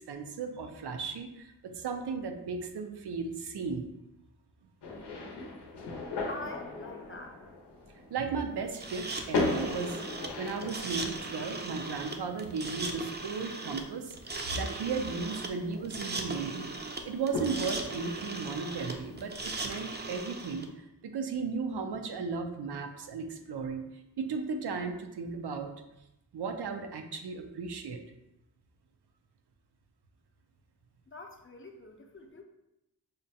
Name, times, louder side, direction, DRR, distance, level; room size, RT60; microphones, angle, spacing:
voice 1, 0.1-3.8 8.1-14.1 14.5-16.7 17.0-23.8 24.2-25.7 26.3-28.0, right 5 dB, 75° right, 5 dB, 0.5 m, -35 dB
sound 1, 4.8-19.4, left 3 dB, 90° left, 0.6 m, -39 dB
voice 2, 6.3-7.4 31.1-32.4, left 2 dB, 30° left, 3 dB, 0.5 m, -44 dB
sound 2, 8.7-20.7, right 3 dB, 25° right, 0.4 m, -38 dB
5.0 x 2.2 x 2.7 m, 0.90 s
cardioid pair, 55°, 40 cm